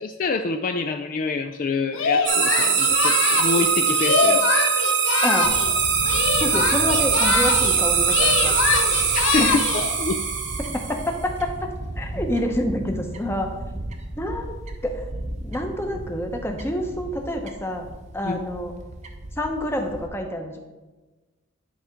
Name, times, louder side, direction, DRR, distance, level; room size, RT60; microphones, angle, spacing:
voice 1, 0.0-4.4 9.1-10.2 18.2-18.4, left 4 dB, 40° left, 6 dB, 0.3 m, -26 dB
Singing, 1.9-5.7 6.0-7.8 8.0-9.9, left 5 dB, 70° left, 0.7 m, -24 dB
sound 1, 2.3-11.2, right 6 dB, 60° right, 1.1 m, -22 dB
Fowl / Bird, 5.4-20.1, right 1 dB, 35° right, 0.6 m, -35 dB
voice 2, 6.4-8.5 9.4-9.5 10.6-13.5 14.2-14.5 14.8-15.0 15.4-17.9 18.1-18.7 19.4-20.6, left 1 dB, 10° left, 3 dB, 0.8 m, -27 dB
10.0 x 3.5 x 5.1 m, 1.2 s
head